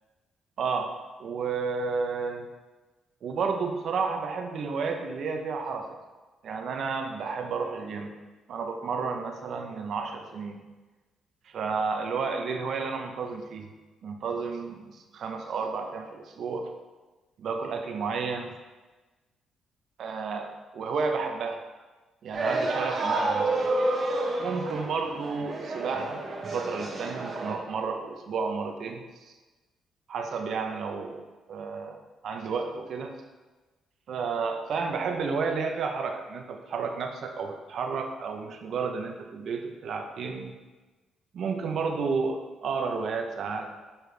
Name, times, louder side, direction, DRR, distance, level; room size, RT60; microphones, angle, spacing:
voice 1, 0.6-2.5 3.2-5.9 6.4-8.1 8.5-10.6 11.5-13.7 14.0-16.7 17.4-18.5 20.0-21.6 22.2-23.6 24.4-26.2 26.5-29.0 30.1-33.1 34.1-40.5 41.3-43.7, right 5 dB, 65° right, 4 dB, 0.7 m, -31 dB
sound 1, 22.3-27.5, right 2 dB, 40° right, 1.0 m, -29 dB
6.8 x 4.4 x 3.4 m, 1.2 s
cardioid pair, 90°, 0 cm